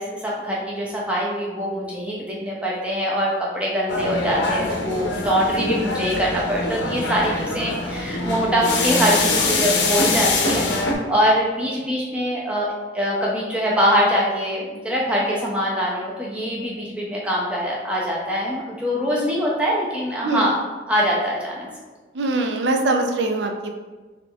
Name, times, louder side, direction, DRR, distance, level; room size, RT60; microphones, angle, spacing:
voice 1, 0.0-20.6 20.9-21.7, equal, 5° right, -4 dB, 0.7 m, -23 dB
sound 1, 3.9-10.9, left 3 dB, 75° left, 0.7 m, -23 dB
voice 2, 22.1-23.7, right 2 dB, 75° right, 4 dB, 0.5 m, -22 dB
4.0 x 3.1 x 3.4 m, 1.3 s
head